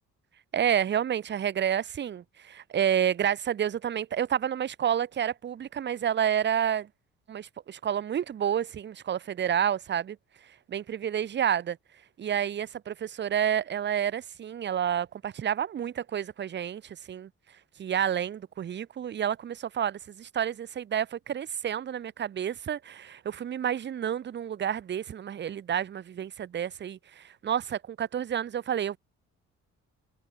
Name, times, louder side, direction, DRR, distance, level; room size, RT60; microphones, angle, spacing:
voice 1, 0.5-6.9 7.3-10.2 10.7-11.8 12.2-17.3 17.8-29.0, right 9 dB, 35° right, 0.6 m, -29 dB
cardioid pair, 90°, 30 cm